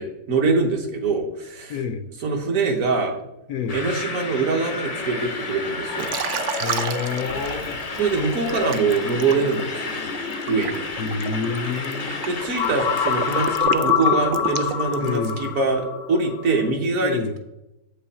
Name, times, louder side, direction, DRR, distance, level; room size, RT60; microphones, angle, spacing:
voice 1, 0.0-1.7 2.2-3.2 3.7-6.2 8.0-10.1 10.5-10.8 12.3-17.4, right 4 dB, 55° right, 3 dB, 1.3 m, -24 dB
voice 2, 1.7-2.1 3.5-3.8 6.6-7.8 11.0-12.2 15.0-15.5 17.0-17.4, left 5 dB, 70° left, 8 dB, 1.0 m, -28 dB
sound 1, 3.7-16.7, left 7 dB, 85° left, 1.6 m, -29 dB
sound 2, 3.7-13.6, left 3 dB, 45° left, 0.5 m, -32 dB
Liquid, 6.0-8.0 8.5-15.5, right 8 dB, 85° right, 0.6 m, -31 dB
7.8 x 5.5 x 4.1 m, 0.91 s
omnidirectional pair, 1.8 m